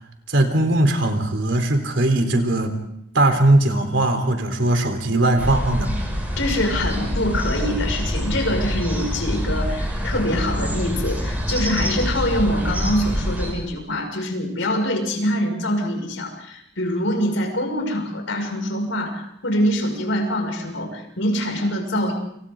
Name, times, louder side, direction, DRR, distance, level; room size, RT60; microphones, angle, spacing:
voice 1, 0.3-2.7 3.1-6.0, right 1 dB, 70° right, 5 dB, 3.8 m, -19 dB
sound 1, 5.4-13.5, equal, 10° right, 6.2 m, -25 dB
voice 2, 6.3-22.1, left 1 dB, 85° left, 3 dB, 6.2 m, -24 dB
29.5 x 27.0 x 3.8 m, 0.74 s
head